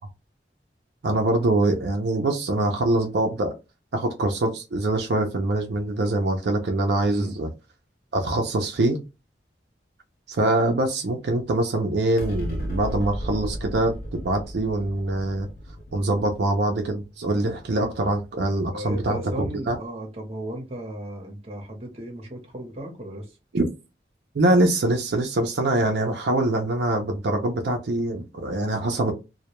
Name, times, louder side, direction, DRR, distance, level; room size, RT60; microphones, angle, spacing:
voice 1, 1.0-3.5 3.9-7.5 8.1-9.0 10.3-15.5 15.9-19.8 23.5-23.6 24.3-29.1, right 2 dB, 70° right, 0.5 m, -24 dB
voice 2, 7.0-7.4 18.7-23.4, right 1 dB, 35° right, 0.8 m, -35 dB
sound 1, 12.2-18.9, equal, 55° left, 0.5 m, -35 dB
2.2 x 2.1 x 2.9 m
head